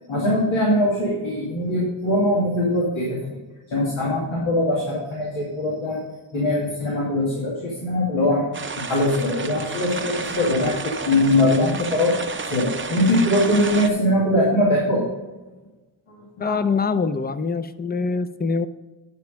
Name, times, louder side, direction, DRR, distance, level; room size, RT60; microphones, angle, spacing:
voice 1, 0.1-3.3 3.7-6.0 6.3-8.5 8.9-15.1 16.4-16.6, left 1 dB, 90° left, -4 dB, 2.3 m, -21 dB
sound 1, 8.5-13.9, right 4 dB, 25° right, 0.6 m, -31 dB
voice 2, 16.4-18.7, left 4 dB, 20° left, 12 dB, 0.5 m, -24 dB
9.6 x 5.9 x 5.1 m, 1.2 s
wide cardioid pair, 100°, 46 cm